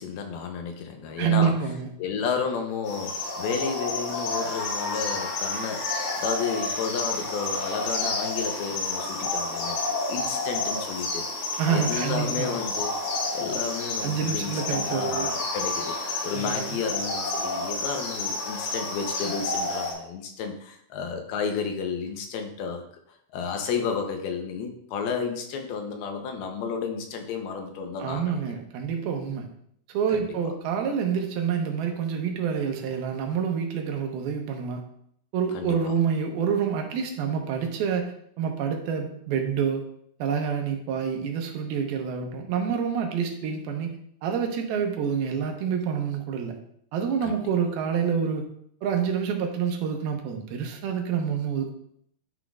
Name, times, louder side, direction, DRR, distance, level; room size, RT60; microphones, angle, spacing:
voice 1, 0.0-1.5 2.0-9.8 10.1-12.9 13.3-16.0 16.2-22.8 23.3-28.4 30.1-30.3 35.5-35.9 47.2-47.4, left 5 dB, 85° left, 4 dB, 2.8 m, -32 dB
voice 2, 1.2-1.9 11.6-12.5 14.0-15.3 16.3-16.8 28.0-29.5 29.9-34.8 35.3-39.8 40.2-46.6 46.9-48.5 48.8-51.7, right 7 dB, 85° right, 3 dB, 2.8 m, -27 dB
sound 1, 2.9-19.9, left 3 dB, 65° left, 3.3 m, -30 dB
11.0 x 5.9 x 2.5 m, 0.69 s
omnidirectional pair, 4.4 m